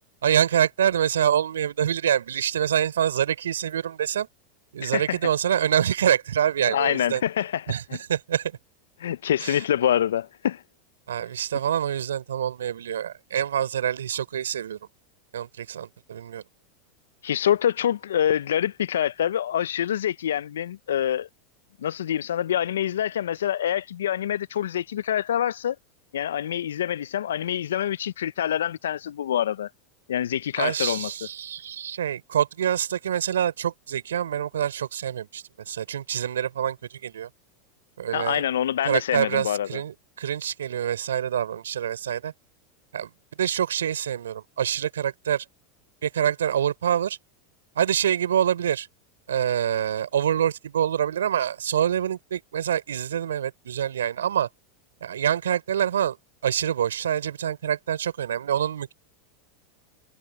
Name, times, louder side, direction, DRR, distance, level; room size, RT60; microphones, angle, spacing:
voice 1, 0.2-4.3 4.7-7.2 7.7-7.8 8.1-8.6 9.4-9.6 11.1-14.8 15.3-16.4 30.6-37.3 38.0-38.4 38.8-42.3 42.9-43.1 43.4-45.5 46.0-47.2 47.8-48.9 49.3-54.5 55.0-56.2 56.4-58.9, right 9 dB, 80° right, 3.8 m, -26 dB
voice 2, 4.8-5.2 6.7-8.0 9.0-10.6 17.2-21.3 21.8-25.8 26.1-29.7 30.1-31.1 38.1-39.8, left 10 dB, 75° left, 0.7 m, -26 dB
hypercardioid pair, 90°, 0 cm